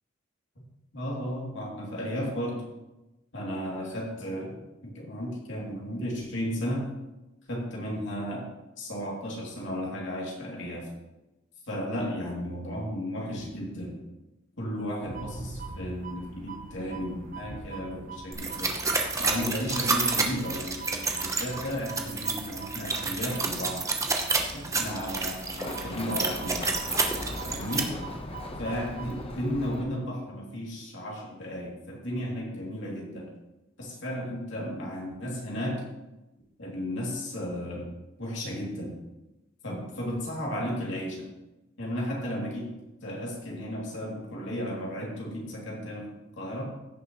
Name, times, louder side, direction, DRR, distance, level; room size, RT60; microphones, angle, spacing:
voice 1, 0.9-2.7 3.3-6.9 7.5-8.5 8.8-10.9 11.6-14.0 14.6-18.8 19.2-23.9 24.5-26.7 27.4-28.0 28.6-33.3 33.8-35.9 36.6-37.9 38.2-39.0 39.6-41.3 41.8-46.6, equal, 65° left, -3 dB, 2.9 m, -34 dB
sound 1, 15.0-29.3, right 3 dB, 45° right, 1.0 m, -43 dB
sound 2, 18.3-27.8, right 3 dB, 15° right, 0.9 m, -29 dB
Run, 24.2-29.8, left 1 dB, 30° left, 1.0 m, -40 dB
15.5 x 6.8 x 3.1 m, 1.0 s
head